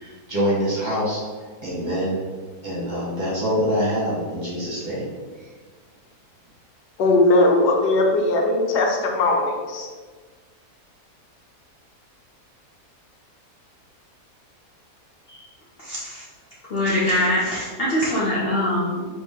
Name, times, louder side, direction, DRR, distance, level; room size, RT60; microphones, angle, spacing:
voice 1, 0.0-2.2 2.6-5.1 5.4-5.5, equal, 30° right, -7 dB, 1.2 m, -25 dB
voice 2, 7.0-9.9, left 2 dB, 85° left, 1 dB, 1.3 m, -19 dB
voice 3, 15.8-16.2 16.7-19.1, left 1 dB, 50° left, -7 dB, 0.8 m, -23 dB
4.1 x 3.1 x 3.6 m, 1.5 s
omnidirectional pair, 1.7 m